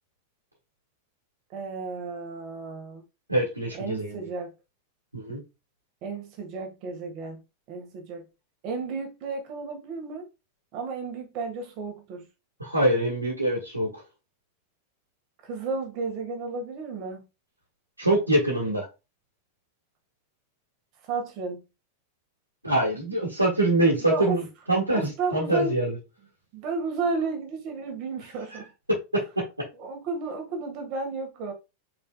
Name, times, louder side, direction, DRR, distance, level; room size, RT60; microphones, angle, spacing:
voice 1, 1.5-3.0 3.7-4.5 6.0-7.4 7.7-8.2 8.6-10.2 10.7-12.3 15.4-17.3 21.1-21.6 24.0-24.4 24.9-25.8 26.5-28.7 29.8-31.5, right 4 dB, 40° right, 1.7 m, -32 dB
voice 2, 3.3-4.3 5.1-5.4 12.6-13.9 18.0-18.8 22.6-26.0 29.1-29.2, right 1 dB, 85° right, 1.7 m, -24 dB
5.3 x 4.2 x 2.3 m
figure-of-eight pair, 90°, 0 cm